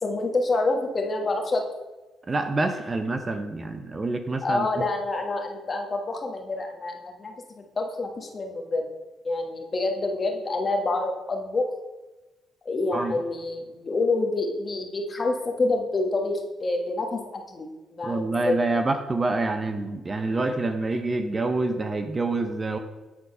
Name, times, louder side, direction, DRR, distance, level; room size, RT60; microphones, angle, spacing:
voice 1, 0.0-1.6 4.4-8.8 9.2-11.7 12.6-18.6, left 2 dB, 35° left, 2 dB, 1.4 m, -27 dB
voice 2, 2.3-4.8 12.9-13.2 18.0-22.8, right 2 dB, 30° right, 8 dB, 0.6 m, -27 dB
8.6 x 4.1 x 5.4 m, 1.1 s
cardioid pair, 90°, 0 cm